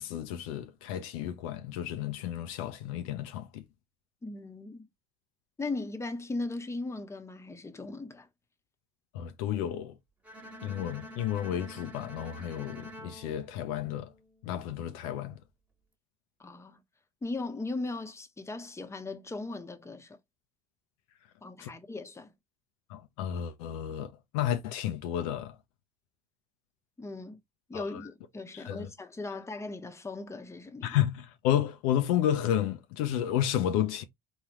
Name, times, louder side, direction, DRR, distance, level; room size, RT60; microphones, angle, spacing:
voice 1, 0.0-3.6 9.1-9.9 10.6-14.1 14.4-15.4 21.6-21.7 22.9-25.6 27.7-28.1 28.5-28.9 30.8-34.0, left 11 dB, 70° left, 0.5 m, -31 dB
voice 2, 4.2-4.8 5.6-8.3 16.4-16.8 17.2-20.2 21.4-22.3 27.0-27.4 27.7-31.0, left 3 dB, 15° left, 0.9 m, -38 dB
Bowed string instrument, 10.2-14.4, equal, 5° right, 1.3 m, -47 dB
4.0 x 2.4 x 3.0 m
figure-of-eight pair, 55°, 18 cm